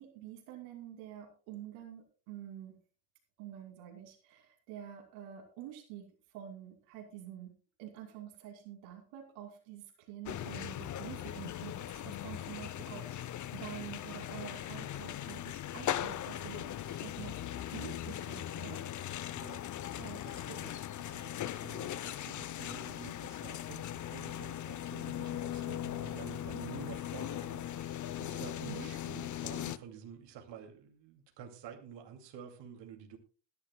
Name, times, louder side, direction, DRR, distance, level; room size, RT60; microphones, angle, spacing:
voice 1, 0.0-2.8 3.4-18.8 20.0-20.3 28.6-28.9, right 10 dB, 90° right, 4 dB, 2.7 m, -48 dB
sound 1, 10.3-29.8, left 11 dB, 40° left, 0.6 m, -39 dB
voice 2, 19.3-33.2, right 7 dB, 65° right, 3 dB, 2.5 m, -50 dB
20.5 x 10.5 x 2.2 m, 0.37 s
supercardioid pair, 95°, 47 cm